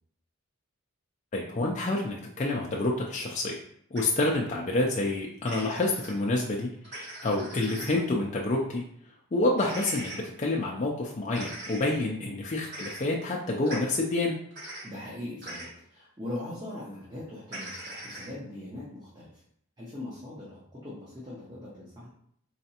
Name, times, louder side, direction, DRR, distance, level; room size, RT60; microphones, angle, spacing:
voice 1, 1.3-3.6 3.9-8.8 9.3-14.4, left 2 dB, 30° left, -1 dB, 0.3 m, -28 dB
sound 1, 4.0-4.1 5.5-6.1 6.8-7.9 9.6-10.2 11.3-11.8 12.7-13.0 13.7-13.8 14.5-14.8 15.4-15.7 17.5-18.3, right 1 dB, 50° right, 1.5 m, -40 dB
voice 2, 14.8-19.4 19.8-22.1, left 1 dB, 20° right, -8 dB, 0.8 m, -41 dB
3.9 x 3.3 x 2.8 m, 0.68 s
head